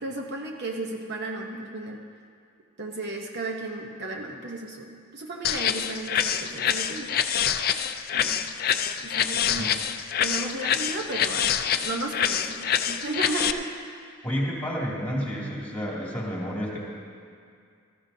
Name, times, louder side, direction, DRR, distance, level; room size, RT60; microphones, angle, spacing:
voice 1, 0.0-2.0 2.8-7.1 8.1-8.4 9.0-9.8 10.2-13.7, right 2 dB, 50° right, 1 dB, 0.9 m, -34 dB
sound 1, 5.4-13.5, left 9 dB, 45° left, 0.4 m, -26 dB
voice 2, 14.2-16.8, equal, 10° left, -5 dB, 2.6 m, -30 dB
19.0 x 14.0 x 2.8 m, 2.3 s
head